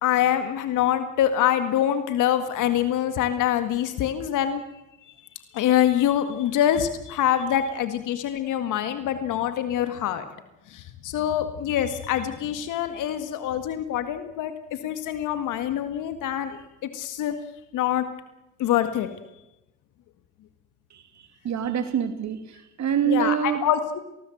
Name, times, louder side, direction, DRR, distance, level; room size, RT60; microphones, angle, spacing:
voice 1, 0.0-4.6 5.5-10.3 10.7-16.6 16.9-17.4 17.7-18.1 18.6-19.1 23.1-24.0, left 11 dB, 90° left, 9 dB, 1.9 m, -25 dB
voice 2, 20.9-23.6, right 8 dB, 65° right, 8 dB, 2.8 m, -26 dB
24.5 x 19.0 x 7.9 m, 0.93 s
cardioid pair, 90°, 30 cm